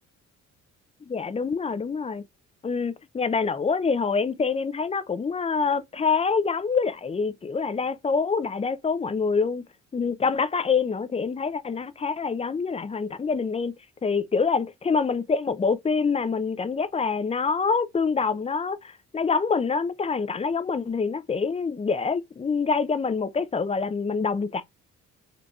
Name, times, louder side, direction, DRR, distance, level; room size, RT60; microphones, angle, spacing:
voice 1, 1.0-2.2 2.6-9.6 9.9-13.7 14.0-24.6, left 5 dB, 20° left, 0.5 m, -26 dB
3.8 x 3.3 x 2.3 m
cardioid pair, 90°, 30 cm